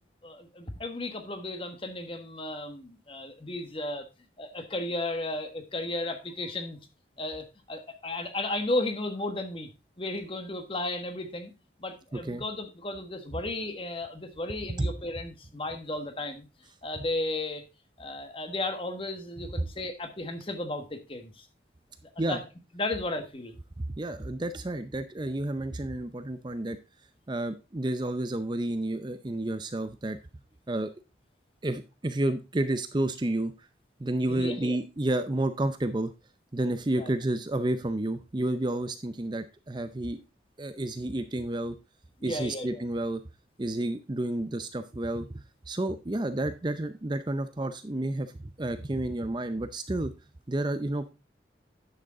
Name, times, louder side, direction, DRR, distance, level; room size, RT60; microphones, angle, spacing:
voice 1, 0.2-4.0 4.4-6.8 7.2-9.7 10.0-11.5 11.8-16.5 16.8-17.6 18.0-21.5 22.0-22.4 22.7-23.6 34.3-34.8 37.0-37.1 38.7-38.8 42.2-42.8, left 2 dB, 30° left, 7 dB, 1.3 m, -34 dB
voice 2, 12.1-12.4 14.8-14.9 22.2-22.4 23.8-26.8 27.3-30.2 30.7-30.9 31.6-33.5 34.0-36.1 36.5-40.2 40.6-41.8 42.2-43.2 43.6-50.1 50.5-51.1, right 1 dB, 25° right, 10 dB, 0.5 m, -30 dB
10.0 x 6.5 x 3.7 m, 0.27 s
head